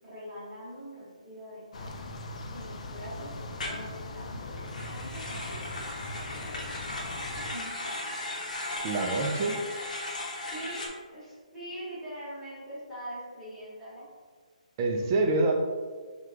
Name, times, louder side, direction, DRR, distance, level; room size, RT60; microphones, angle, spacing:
voice 1, 0.0-2.1 2.5-6.7 7.3-8.2 10.5-14.1 14.9-15.3, equal, ahead, -13 dB, 1.0 m, -44 dB
sound 1, 1.7-7.5, left 2 dB, 55° left, 0.4 m, -40 dB
sound 2, 3.6-3.8 4.6-10.9, left 2 dB, 70° left, 0.8 m, -36 dB
voice 2, 8.8-9.6 14.8-15.5, right 3 dB, 25° right, 3 dB, 0.3 m, -26 dB
3.1 x 2.3 x 3.6 m, 1.5 s
hypercardioid pair, 170°, 4 cm